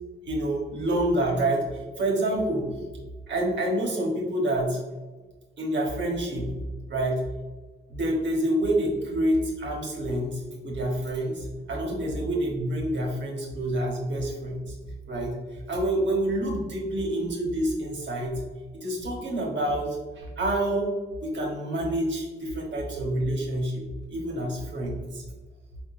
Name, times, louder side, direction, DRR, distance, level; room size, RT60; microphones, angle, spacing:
voice 1, 0.3-1.6 2.0-2.7 3.3-4.8 5.6-6.5 6.9-7.2 7.9-14.8 15.1-15.4 15.7-18.4 18.8-20.9 21.2-23.8 24.1-25.2, right 1 dB, 85° right, -1 dB, 1.2 m, -27 dB
4.8 x 3.7 x 2.5 m, 1.3 s
wide cardioid pair, 150°, 18 cm